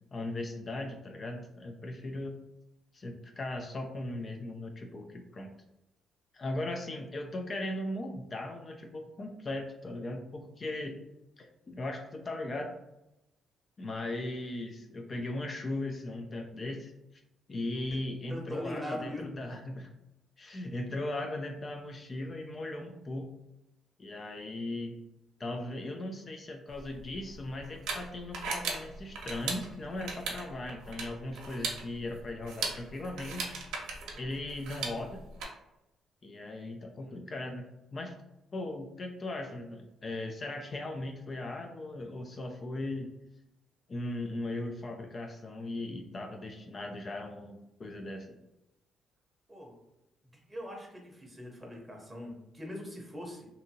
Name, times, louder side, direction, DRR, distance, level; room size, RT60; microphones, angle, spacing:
voice 1, 0.1-2.4 2.9-5.5 6.3-11.0 11.4-12.8 13.8-16.9 17.5-19.9 20.4-23.3 24.0-25.0 25.4-33.6 34.1-35.2 36.2-37.6 37.9-38.2 38.5-43.1 43.9-48.4, left 2 dB, 35° left, 4 dB, 0.3 m, -38 dB
voice 2, 18.3-19.3 36.8-37.2 49.5-49.7 50.3-53.5, equal, 10° right, 0 dB, 0.8 m, -41 dB
sound 1, 26.7-35.4, right 4 dB, 90° right, 0.6 m, -39 dB
2.6 x 2.6 x 2.7 m, 0.91 s
cardioid pair, 90°, 0 cm